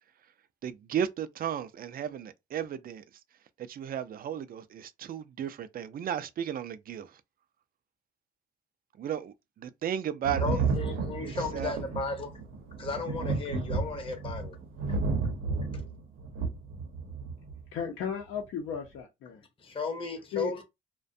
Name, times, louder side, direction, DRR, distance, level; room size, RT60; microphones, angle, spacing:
voice 1, 0.6-3.0 3.6-7.2 9.0-10.6 11.2-11.7, right 9 dB, 50° right, 0.4 m, -34 dB
Thunder, 10.2-17.6 18.7-18.8, right 4 dB, 85° right, 0.7 m, -32 dB
voice 2, 10.4-12.3 12.8-14.6 15.7-15.8 19.6-20.6, left 3 dB, 25° left, 0.7 m, -35 dB
voice 3, 17.7-19.4 20.3-20.5, left 7 dB, 80° left, 0.6 m, -35 dB
2.4 x 2.1 x 2.6 m
cardioid pair, 90°, 20 cm